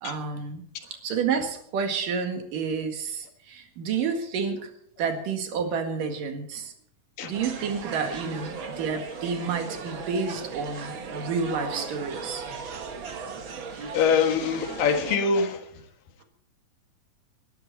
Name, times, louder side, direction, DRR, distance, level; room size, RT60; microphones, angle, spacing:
voice 1, 0.0-4.7 5.0-6.7 7.2-12.4, right 5 dB, 75° right, 5 dB, 3.6 m, -30 dB
sound 1, 7.3-15.2, right 5 dB, 45° right, 1.8 m, -37 dB
voice 2, 13.9-15.7, left 5 dB, 85° left, 6 dB, 3.3 m, -23 dB
20.5 x 12.0 x 4.2 m, 0.65 s
omnidirectional pair, 3.8 m